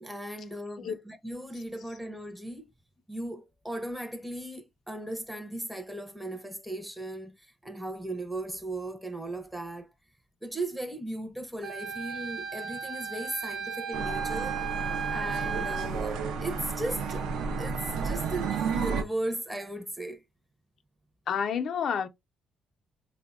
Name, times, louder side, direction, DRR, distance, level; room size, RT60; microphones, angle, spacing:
voice 1, 0.0-2.7 3.1-9.9 10.4-14.5 15.1-17.3 17.6-20.2, right 1 dB, 5° right, 0.5 m, -37 dB
Wind instrument woodwind instrument, 11.6-15.9, right 6 dB, 45° right, 0.6 m, -35 dB
sound 1, 13.9-19.0, right 5 dB, 85° right, 0.4 m, -32 dB
voice 2, 21.3-22.1, left 7 dB, 60° left, 0.4 m, -29 dB
3.5 x 2.1 x 2.3 m
cardioid pair, 90°, 0 cm